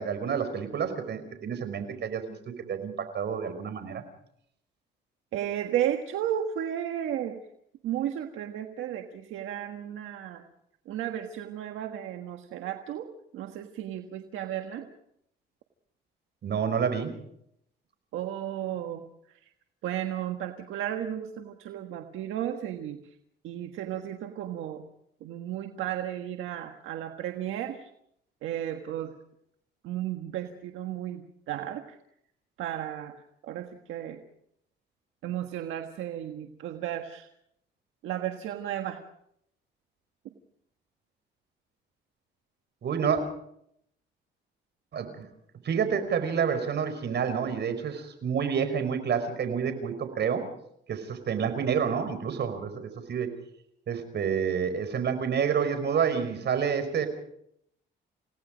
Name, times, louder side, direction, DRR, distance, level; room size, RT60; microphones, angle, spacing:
voice 1, 0.0-2.2 2.7-4.0 16.4-17.1 42.8-43.2 44.9-45.3 45.6-50.5 50.9-53.3 53.9-57.1, right 7 dB, 60° right, 9 dB, 5.1 m, -28 dB
voice 2, 5.3-7.4 7.8-10.4 10.8-14.9 18.1-19.5 19.8-23.1 23.4-24.8 25.2-27.9 28.4-29.1 29.8-32.0 32.6-34.2 35.2-37.3 38.0-39.0, right 11 dB, 85° right, 5 dB, 1.6 m, -34 dB
29.5 x 17.5 x 5.2 m, 0.72 s
cardioid pair, 90°, 20 cm